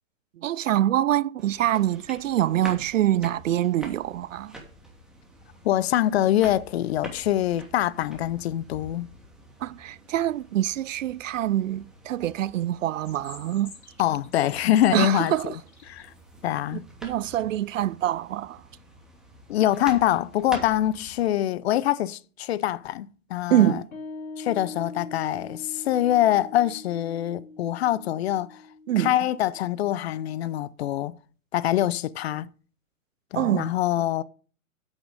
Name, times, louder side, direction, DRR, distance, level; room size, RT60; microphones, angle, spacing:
voice 1, 0.4-4.6 9.6-13.7 14.9-15.6 16.7-18.6 23.5-23.9 28.9-29.1 33.3-33.7, right 13 dB, 65° right, 0.5 m, -25 dB
sound 1, 1.4-21.3, right 1 dB, ahead, 2.8 m, -46 dB
voice 2, 5.6-9.1 14.0-15.5 15.9-16.1 16.4-16.8 19.5-23.8 24.4-28.6 29.0-31.2 31.5-32.5 33.3-34.2, left 12 dB, 45° left, 0.7 m, -24 dB
sound 2, 12.9-16.0, left 4 dB, 85° left, 3.7 m, -47 dB
sound 3, 23.6-30.5, left 3 dB, 65° left, 4.1 m, -43 dB
8.8 x 8.7 x 5.2 m
hypercardioid pair, 120°, 43 cm